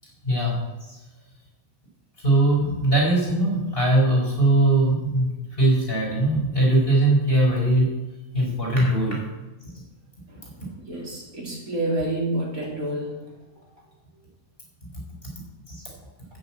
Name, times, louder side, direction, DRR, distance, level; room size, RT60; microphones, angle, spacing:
voice 1, 0.2-0.6 0.9-1.0 2.2-5.3 5.6-7.9 8.3-9.2 14.9-15.0 15.7-15.8, right 1 dB, 40° left, -3 dB, 5.3 m, -20 dB
voice 2, 10.9-13.1, right 1 dB, 75° right, -2 dB, 3.8 m, -28 dB
10.5 x 9.4 x 7.5 m, 1.1 s
omnidirectional pair, 1.5 m